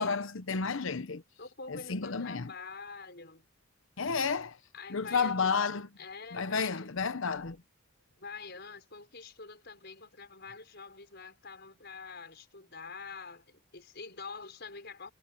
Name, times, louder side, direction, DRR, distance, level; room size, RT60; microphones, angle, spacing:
voice 1, 0.0-1.2 1.7-2.5 4.0-4.6 4.9-5.9 6.3-7.6, left 5 dB, 70° left, 0.9 m, -31 dB
voice 2, 1.4-3.5 4.7-5.5 6.0-6.9 8.2-15.1, left 4 dB, 50° left, 6.2 m, -46 dB
head